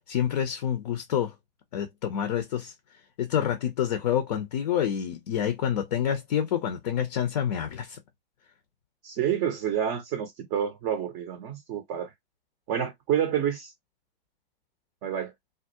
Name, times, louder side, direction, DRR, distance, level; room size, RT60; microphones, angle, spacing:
voice 1, 0.1-1.3 1.7-2.7 3.2-8.0, left 9 dB, 45° left, 0.5 m, -27 dB
voice 2, 9.0-12.1 12.7-13.7 15.0-15.3, right 9 dB, 25° right, 0.5 m, -28 dB
2.3 x 2.0 x 2.6 m
figure-of-eight pair, 110°, 29 cm